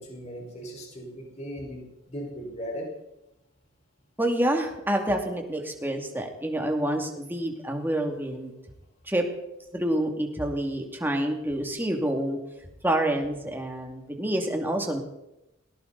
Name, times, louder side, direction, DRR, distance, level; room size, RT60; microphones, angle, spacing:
voice 1, 0.0-2.9, equal, 35° left, 0 dB, 4.9 m, -38 dB
voice 2, 4.2-8.5 9.1-9.2 9.7-12.4 12.8-15.0, right 1 dB, 10° right, 2 dB, 2.5 m, -27 dB
19.0 x 18.5 x 4.1 m, 0.91 s
head